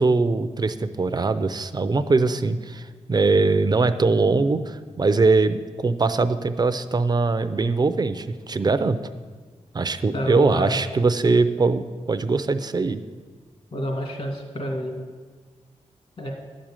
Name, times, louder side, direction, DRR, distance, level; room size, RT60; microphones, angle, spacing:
voice 1, 0.0-9.0 9.7-13.0, right 3 dB, 35° right, 11 dB, 0.6 m, -21 dB
voice 2, 10.1-10.8 13.7-15.0 16.2-16.3, equal, 55° left, 0 dB, 2.3 m, -28 dB
11.5 x 6.3 x 8.8 m, 1.5 s
wide cardioid pair, 130°, 12 cm